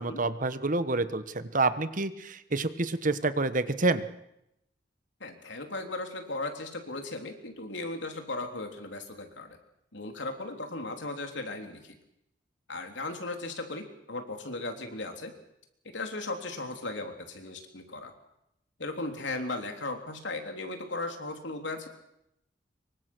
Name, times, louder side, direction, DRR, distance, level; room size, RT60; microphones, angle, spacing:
voice 1, 0.0-4.1, right 3 dB, 45° right, 12 dB, 1.3 m, -28 dB
voice 2, 5.2-9.6 9.9-12.0 12.7-15.3 15.9-18.1 18.8-21.9, left 2 dB, 80° left, 5 dB, 3.5 m, -37 dB
25.5 x 23.5 x 6.3 m, 0.82 s
head